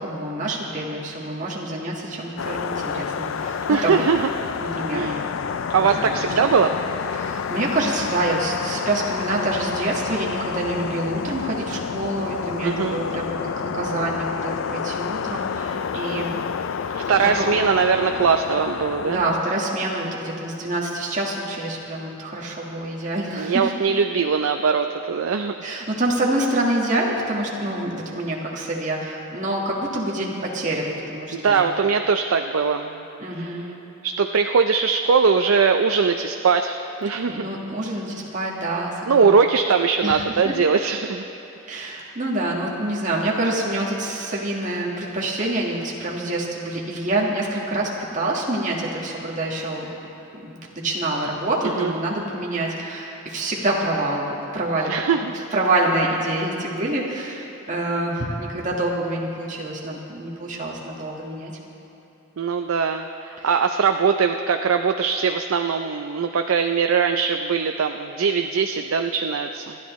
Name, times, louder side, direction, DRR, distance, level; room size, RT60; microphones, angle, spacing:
voice 1, 0.0-4.1 4.6-5.2 5.8-6.1 6.4-6.5 7.1-16.3 17.4-17.5 19.0-23.7 25.6-31.7 33.2-33.7 37.2-39.3 40.0-40.6 41.7-49.9 50.4-54.9 55.5-61.5 63.4-63.5, right 1 dB, 35° right, -4 dB, 1.6 m, -26 dB
sound 1, 2.4-19.4, left 6 dB, 70° left, 0.4 m, -29 dB
voice 2, 3.7-4.3 4.9-5.2 5.7-6.7 12.6-13.0 16.9-19.2 23.4-25.6 31.3-33.0 34.0-37.4 39.1-41.2 41.7-41.8 51.8-51.9 54.9-55.3 62.4-69.8, right 5 dB, 80° right, 6 dB, 0.5 m, -21 dB
26.5 x 10.5 x 3.1 m, 3.0 s
head